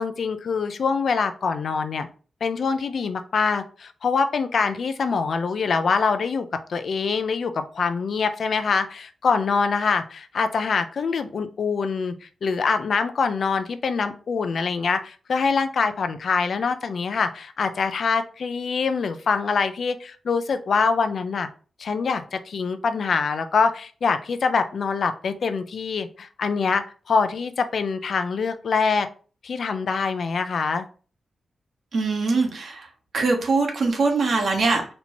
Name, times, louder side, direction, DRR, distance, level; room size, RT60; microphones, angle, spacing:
voice 1, 0.0-2.1 2.4-21.5 21.8-29.1 29.4-30.9, left 5 dB, 60° left, 10 dB, 0.5 m, -24 dB
voice 2, 31.9-32.9 33.1-34.9, right 3 dB, 55° right, 3 dB, 1.1 m, -22 dB
4.3 x 2.8 x 4.3 m, 0.39 s
wide cardioid pair, 155°, 0 cm